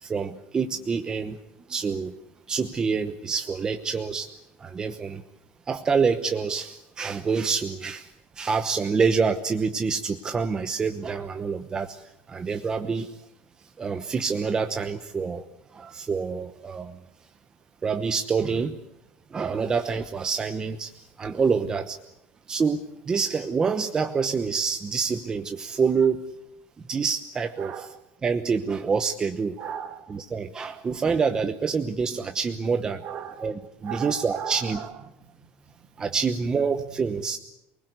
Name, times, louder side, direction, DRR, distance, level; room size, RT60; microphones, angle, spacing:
voice 1, 0.0-1.4 1.7-2.1 2.5-4.3 4.6-5.2 5.7-13.2 13.8-15.4 15.7-17.0 17.8-18.8 19.3-20.9 21.2-22.0 22.5-26.3 26.9-27.9 28.2-29.6 30.1-33.0 33.4-34.8 36.0-37.4, right 5 dB, 15° right, 8 dB, 1.0 m, -27 dB
voice 2, 27.6-27.9 29.6-30.1 33.0-33.5 33.8-34.9, right 8 dB, 40° right, 10 dB, 1.9 m, -36 dB
28.5 x 20.5 x 8.2 m, 0.88 s
cardioid pair, 175°, 4 cm